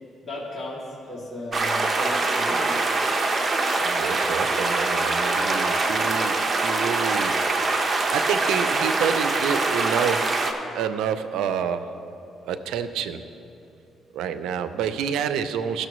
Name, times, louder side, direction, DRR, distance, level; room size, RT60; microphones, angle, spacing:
voice 1, 0.2-2.8, left 2 dB, 30° left, -7 dB, 2.4 m, -35 dB
sound 1, 1.5-10.5, right 3 dB, 35° right, 0.8 m, -23 dB
voice 2, 3.8-12.0 12.4-13.2 14.1-15.9, right 8 dB, 90° right, 11 dB, 0.4 m, -29 dB
16.0 x 6.4 x 3.1 m, 2.8 s
cardioid pair, 90°, 0 cm